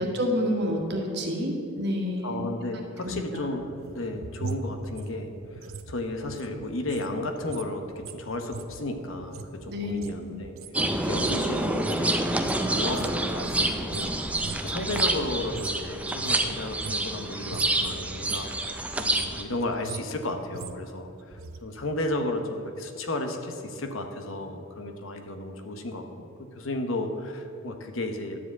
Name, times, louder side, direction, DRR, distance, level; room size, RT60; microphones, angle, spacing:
voice 1, 0.0-2.4 3.0-3.2 9.7-10.4, left 1 dB, 50° right, 1 dB, 1.5 m, -29 dB
voice 2, 2.2-10.6 10.9-28.4, left 1 dB, 70° left, 5 dB, 1.0 m, -33 dB
sound 1, 3.5-7.1 7.4-15.9 16.1-17.2 17.5-17.8 18.1-18.6 18.9-21.6 21.9-22.0, right 4 dB, 75° right, 0.6 m, -40 dB
sound 2, 10.7-19.4, right 1 dB, 5° right, 0.4 m, -28 dB
11.0 x 5.0 x 8.1 m, 2.5 s
head